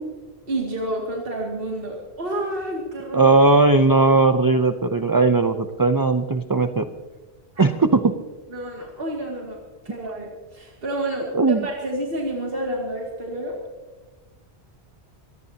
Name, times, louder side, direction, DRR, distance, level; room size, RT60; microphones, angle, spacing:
voice 1, 0.5-3.3 7.5-7.6 8.5-9.6 9.8-13.6, right 1 dB, 60° right, -2 dB, 2.6 m, -29 dB
voice 2, 3.1-6.9 7.6-8.2 11.3-11.6, right 3 dB, 25° right, 9 dB, 0.5 m, -18 dB
24.5 x 19.0 x 2.8 m, 1.3 s
omnidirectional pair, 1.1 m